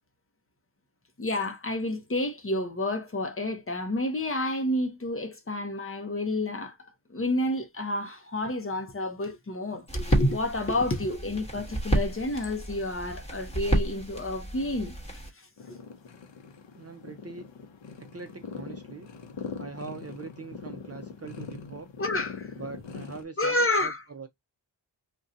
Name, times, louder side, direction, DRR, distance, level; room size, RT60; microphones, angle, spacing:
voice 1, 1.2-15.8 22.0-22.5 23.4-24.0, left 1 dB, 30° left, 0.7 m, -30 dB
sound 1, 9.9-15.3, right 1 dB, 15° left, 1.1 m, -31 dB
sound 2, 15.6-23.2, left 5 dB, 70° left, 0.7 m, -42 dB
voice 2, 16.7-17.5 18.0-19.1 19.6-21.9 22.6-23.6 23.8-24.3, right 4 dB, 35° right, 0.5 m, -42 dB
2.6 x 2.2 x 3.7 m
wide cardioid pair, 125°, 46 cm